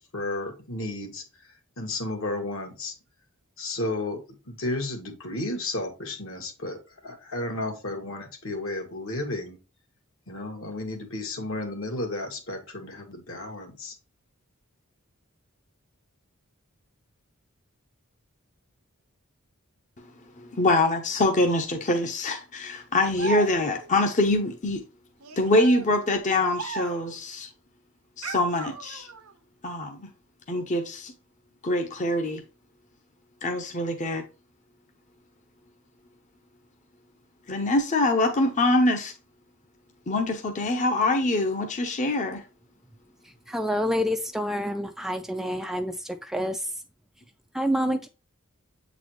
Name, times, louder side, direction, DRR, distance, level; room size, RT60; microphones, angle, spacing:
voice 1, 0.1-1.2 1.8-2.9 3.6-4.2 4.5-6.8 7.0-9.6 10.3-14.0, left 2 dB, 65° left, 1.8 m, -32 dB
voice 2, 20.4-24.8 25.4-27.5 28.2-29.1 29.6-30.1 30.5-31.1 31.6-32.4 33.4-34.2 37.5-39.1 40.1-42.4, left 2 dB, 35° left, 0.8 m, -24 dB
sound 1, 23.2-24.0 25.2-27.2 28.2-29.3, right 5 dB, 90° right, 0.9 m, -36 dB
voice 3, 43.2-46.7 47.5-48.1, equal, ahead, 0.3 m, -28 dB
7.9 x 4.1 x 3.0 m
head